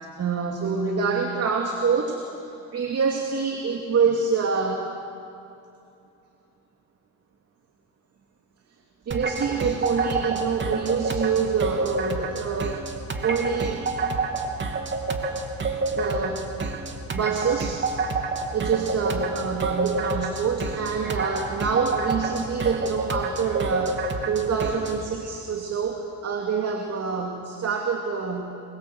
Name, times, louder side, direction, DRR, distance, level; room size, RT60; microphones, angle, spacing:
voice 1, 0.0-4.9 9.1-12.9 13.2-14.0 15.9-16.5 17.1-17.9 18.5-28.5, right 5 dB, 55° right, 2 dB, 2.7 m, -26 dB
sound 1, 9.1-25.0, right 3 dB, 40° right, 3.0 m, -29 dB
28.5 x 22.5 x 8.0 m, 2.7 s
cardioid pair, 90°, 30 cm